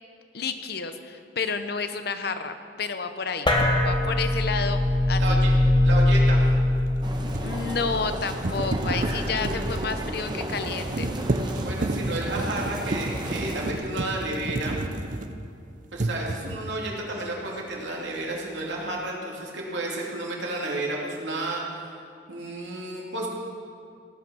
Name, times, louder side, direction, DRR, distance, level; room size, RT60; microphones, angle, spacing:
voice 1, 0.3-3.5 3.8-4.8 5.1-5.4 7.4-11.1, left 5 dB, 60° left, 9 dB, 0.8 m, -30 dB
sound 1, 3.5-10.2, left 1 dB, 25° left, 1.4 m, -23 dB
sound 2, 3.6-3.8 6.8-15.6 15.9-16.7, right 2 dB, 45° right, 0.7 m, -31 dB
voice 2, 5.2-5.5 5.8-6.5 11.6-14.8 15.9-21.6 22.3-23.3, right 2 dB, 85° right, -2 dB, 2.8 m, -31 dB
sound 3, 7.0-13.7, right 1 dB, 25° right, 1.2 m, -34 dB
17.0 x 8.9 x 6.2 m, 2.4 s
head